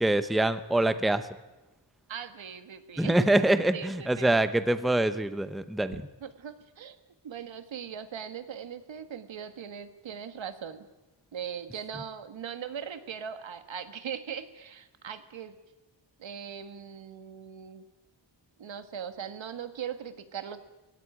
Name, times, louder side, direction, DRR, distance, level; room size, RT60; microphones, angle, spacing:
voice 1, 0.0-1.3 3.0-6.0, right 1 dB, ahead, 12 dB, 0.7 m, -25 dB
voice 2, 2.1-4.3 6.2-7.0 7.2-10.9 11.3-15.6 16.2-17.8 18.6-20.6, right 8 dB, 85° right, 10 dB, 1.7 m, -40 dB
20.0 x 17.0 x 9.9 m, 1.1 s
wide cardioid pair, 170°, 45 cm